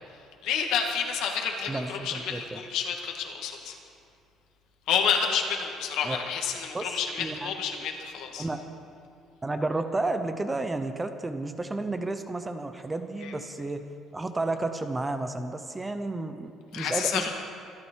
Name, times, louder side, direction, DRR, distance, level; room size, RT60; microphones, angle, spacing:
voice 1, 0.4-3.8 4.9-8.5 13.2-13.3 16.7-17.3, left 7 dB, 70° left, 2 dB, 2.1 m, -29 dB
voice 2, 1.7-2.6 6.0-6.2 6.7-7.6 8.4-8.6 9.4-13.8 14.1-17.3, right 2 dB, 10° right, 8 dB, 0.7 m, -32 dB
25.5 x 12.0 x 4.6 m, 2.4 s
cardioid pair, 170°, 0 cm